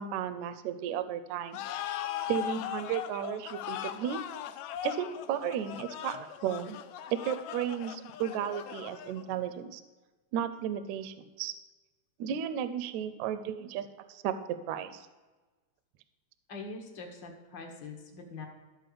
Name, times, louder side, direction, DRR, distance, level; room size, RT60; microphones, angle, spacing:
voice 1, 0.0-1.6 2.3-4.2 4.8-6.8 7.1-9.8 10.3-11.5 12.2-15.0, right 9 dB, 75° right, 11 dB, 1.8 m, -34 dB
sound 1, 1.5-9.4, left 11 dB, 85° left, 1.6 m, -39 dB
voice 2, 16.5-18.4, left 3 dB, 50° left, 2 dB, 1.5 m, -43 dB
13.0 x 4.4 x 6.9 m, 1.3 s
omnidirectional pair, 3.8 m